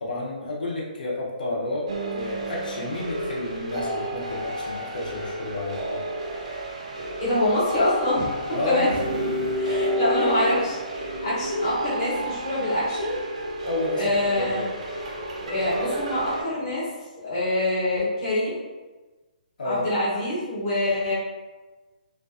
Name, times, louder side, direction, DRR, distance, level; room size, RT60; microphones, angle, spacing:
voice 1, 0.0-6.0 8.5-9.3 13.7-14.7 19.6-19.9, left 1 dB, 70° left, -4 dB, 0.6 m, -31 dB
sound 1, 1.9-16.4, right 1 dB, 45° right, 0.4 m, -30 dB
voice 2, 7.2-8.9 9.6-13.2 14.0-14.7 15.4-16.9 17.2-18.6 19.6-21.1, left 1 dB, 20° left, -9 dB, 0.7 m, -25 dB
2.4 x 2.2 x 2.4 m, 1.2 s
hypercardioid pair, 180°, 5 cm